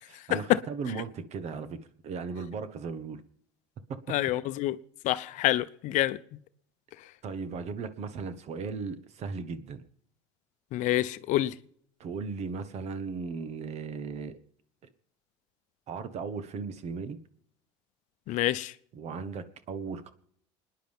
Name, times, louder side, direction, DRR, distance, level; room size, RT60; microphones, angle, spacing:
voice 1, 0.1-3.2 3.9-4.0 7.2-9.8 12.0-14.4 15.9-17.2 18.3-18.4 18.9-20.1, right 5 dB, 50° right, 1.4 m, -37 dB
voice 2, 4.1-4.8 5.0-6.2 10.7-11.5 18.3-18.7, left 15 dB, 60° left, 0.7 m, -27 dB
29.0 x 10.0 x 3.6 m
supercardioid pair, 105°, 15 cm